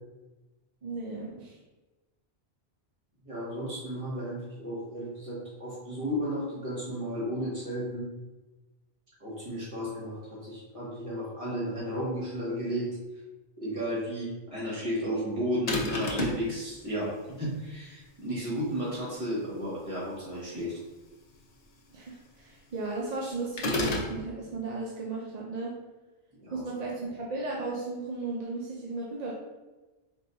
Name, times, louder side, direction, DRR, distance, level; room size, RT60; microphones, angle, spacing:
voice 1, 0.8-1.6 21.9-25.7 26.5-29.3, right 3 dB, 50° right, -3 dB, 0.6 m, -35 dB
voice 2, 3.2-8.1 9.2-12.9 13.6-20.8 26.4-26.6, equal, 30° right, -8 dB, 1.7 m, -33 dB
sound 1, 15.7-16.5 23.6-24.2, left 2 dB, 45° left, 0.6 m, -29 dB
4.3 x 3.6 x 2.7 m, 1.1 s
omnidirectional pair, 1.0 m